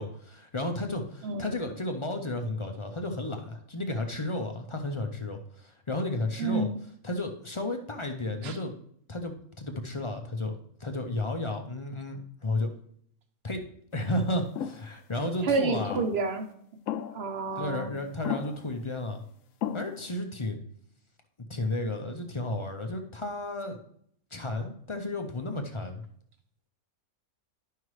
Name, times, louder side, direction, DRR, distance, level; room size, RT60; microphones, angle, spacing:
voice 1, 0.0-6.7 7.0-8.7 9.1-12.7 13.4-13.6 13.9-16.0 17.6-19.2 19.7-20.6 21.5-23.8 24.3-26.0, left 2 dB, 35° left, 5 dB, 0.4 m, -33 dB
voice 2, 1.2-1.5 6.4-6.8 8.4-8.6 15.4-16.5 17.1-17.9, right 3 dB, 50° right, 7 dB, 1.0 m, -29 dB
sound 1, 14.6-14.8 15.9-16.3 16.9-17.4 18.2-18.7 19.6-20.1, left 9 dB, 70° left, 0.9 m, -34 dB
11.0 x 5.7 x 3.1 m, 0.67 s
omnidirectional pair, 1.5 m